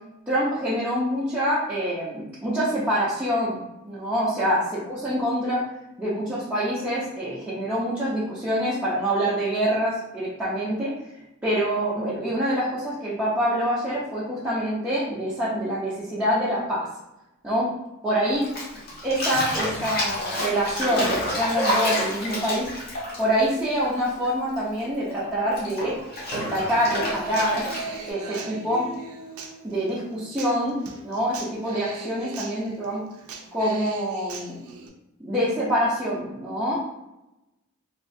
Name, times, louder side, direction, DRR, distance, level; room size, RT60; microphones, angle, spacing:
voice 1, 0.3-5.6 6.0-10.9 11.4-16.9 17.4-17.7 18.0-18.4 19.0-22.7 23.2-25.9 26.3-27.7 28.1-28.9 29.6-30.8 31.0-33.0 33.5-34.6 35.2-36.8, equal, 5° right, -11 dB, 0.6 m, -25 dB
Bathtub (filling or washing), 18.4-24.3 24.5-28.1, left 1 dB, 45° left, 0.9 m, -29 dB
Human voice / Acoustic guitar, 26.9-34.9, right 3 dB, 75° right, 0.5 m, -39 dB
3.2 x 2.3 x 2.6 m, 0.95 s
head